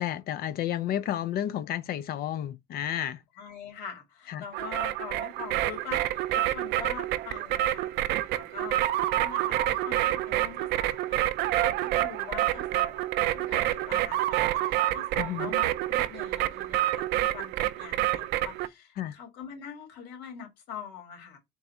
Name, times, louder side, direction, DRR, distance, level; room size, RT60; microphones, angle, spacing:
voice 1, 0.0-3.2 4.3-4.4 15.2-15.5 19.0-19.2, left 11 dB, 65° left, 0.4 m, -31 dB
voice 2, 3.4-13.0 13.3-17.0 17.3-21.4, left 7 dB, 85° left, 1.9 m, -44 dB
sound 1, 4.5-18.7, right 14 dB, 80° right, 0.4 m, -28 dB
4.0 x 2.3 x 4.1 m
cardioid pair, 110°, 17 cm